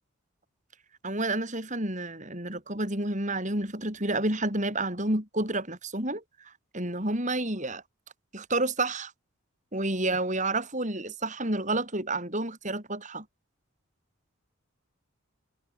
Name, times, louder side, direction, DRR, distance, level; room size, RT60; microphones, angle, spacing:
voice 1, 1.0-6.2 6.7-7.8 8.3-9.1 9.7-13.2, right 2 dB, 35° right, 7.7 m, -29 dB
head